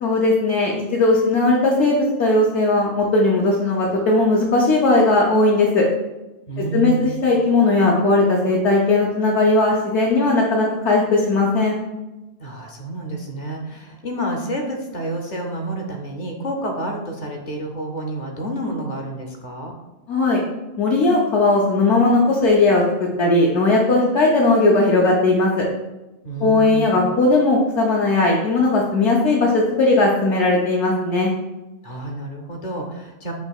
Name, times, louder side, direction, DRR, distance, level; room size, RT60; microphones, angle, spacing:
voice 1, 0.0-5.8 6.7-11.7 20.1-20.4 20.8-25.7 26.4-31.3, left 2 dB, 65° left, -3 dB, 0.9 m, -18 dB
voice 2, 6.5-7.2 12.4-19.7 26.2-27.0 31.8-33.3, right 1 dB, 50° left, 2 dB, 0.6 m, -29 dB
6.9 x 2.8 x 2.3 m, 1.0 s
omnidirectional pair, 1.3 m